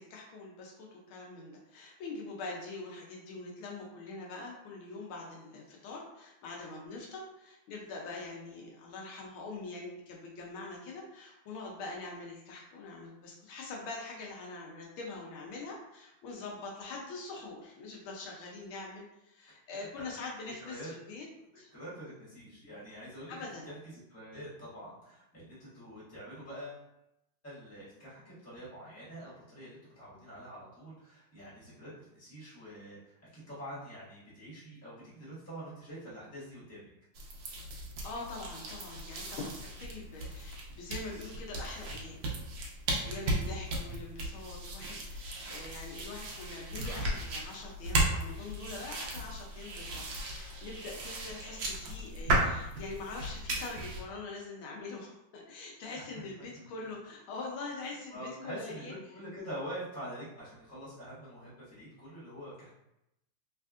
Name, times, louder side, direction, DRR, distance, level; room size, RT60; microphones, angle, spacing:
voice 1, 0.0-21.3 21.6-21.7 23.3-23.7 38.0-42.2 43.0-58.9, left 3 dB, 75° left, -1 dB, 1.4 m, -44 dB
voice 2, 20.6-20.9 21.7-23.3 23.6-23.8 24.1-26.8 27.4-36.8 55.9-56.0 56.5-56.6 58.1-62.7, equal, 10° left, -9 dB, 1.0 m, -45 dB
sound 1, 37.1-54.0, right 1 dB, 70° right, 1.1 m, -36 dB
3.5 x 3.2 x 2.4 m, 0.86 s
omnidirectional pair, 2.3 m